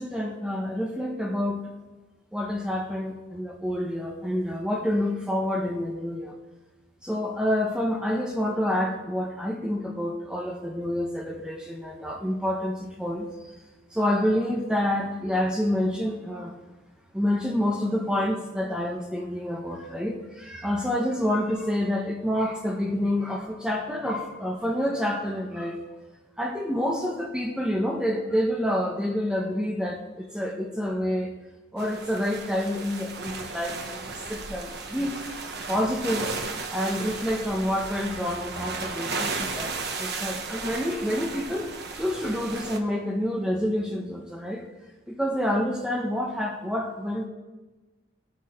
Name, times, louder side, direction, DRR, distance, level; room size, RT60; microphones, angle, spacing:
voice 1, 0.0-1.6 2.3-6.3 7.0-13.5 13.9-16.5 17.1-25.8 26.4-31.3 31.7-35.1 35.7-36.3 36.7-39.7 40.0-44.6 45.1-47.3, left 1 dB, 5° right, 0 dB, 1.0 m, -28 dB
Waves mid. on Rocks close distance, 31.8-42.8, right 4 dB, 50° right, 1.2 m, -35 dB
19.5 x 8.6 x 4.4 m, 1.2 s
head